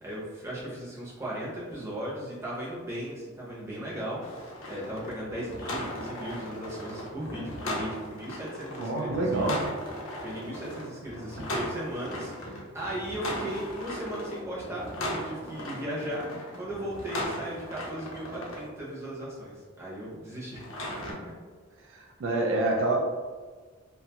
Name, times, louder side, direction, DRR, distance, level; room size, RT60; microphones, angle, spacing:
voice 1, 0.0-9.5 10.2-20.6 21.2-21.3, right 1 dB, 15° right, -7 dB, 0.6 m, -37 dB
sound 1, 4.2-18.6 20.5-21.1, left 1 dB, 75° left, 0.6 m, -37 dB
voice 2, 8.8-9.6 21.9-23.0, right 2 dB, 70° right, 0 dB, 0.4 m, -27 dB
2.6 x 2.2 x 2.8 m, 1.4 s
head